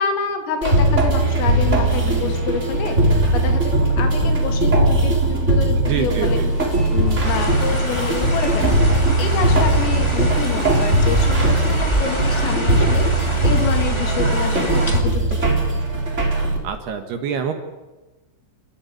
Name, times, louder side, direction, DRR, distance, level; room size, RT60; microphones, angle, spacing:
voice 1, 0.0-6.5 6.9-8.9 9.2-15.5, left 6 dB, 80° left, 5 dB, 5.3 m, -28 dB
sound 1, 0.6-16.6, right 2 dB, 15° right, 3.4 m, -19 dB
voice 2, 5.8-6.5 16.6-17.5, right 7 dB, 65° right, 6 dB, 3.0 m, -26 dB
sound 2, 6.2-12.5, left 1 dB, 10° left, 3.3 m, -38 dB
sound 3, 7.2-15.0, equal, 50° left, 0.3 m, -27 dB
28.5 x 14.0 x 9.7 m, 1.1 s
omnidirectional pair, 5.9 m